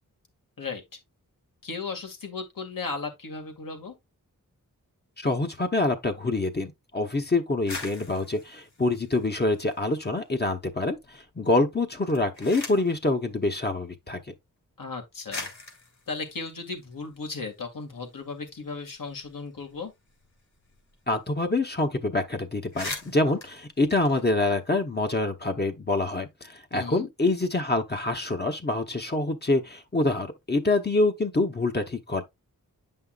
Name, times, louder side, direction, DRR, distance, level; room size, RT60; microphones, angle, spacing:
voice 1, 1.6-3.9 14.8-15.5 16.1-19.9 26.7-27.1, left 4 dB, 70° left, 2.1 m, -36 dB
voice 2, 5.2-14.2 21.1-32.2, left 2 dB, 30° left, 1.0 m, -26 dB
sound 1, 7.5-10.1 10.4-11.1 11.9-13.0 14.0-14.1 14.9-15.0 15.3-17.6 18.0-18.1 18.3-20.9 21.2-21.3 21.6-21.9 22.2-22.3 22.6-24.8, left 3 dB, 55° left, 2.9 m, -42 dB
9.1 x 5.6 x 2.4 m
wide cardioid pair, 120°, 34 cm